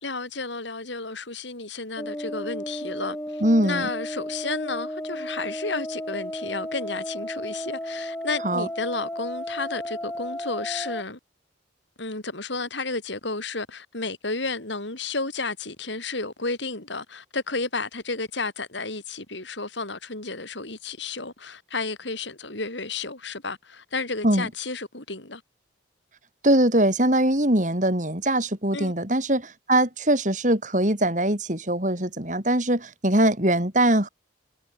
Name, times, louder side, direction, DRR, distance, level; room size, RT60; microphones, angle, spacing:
voice 1, 0.0-11.2 12.0-25.4 28.7-28.9, left 3 dB, 70° left, 4.9 m, -32 dB
sound 1, 2.0-11.0, left 1 dB, 10° left, 6.6 m, -34 dB
voice 2, 3.4-3.9 8.4-8.7 24.2-24.5 26.4-34.1, right 1 dB, 40° right, 4.4 m, -22 dB
head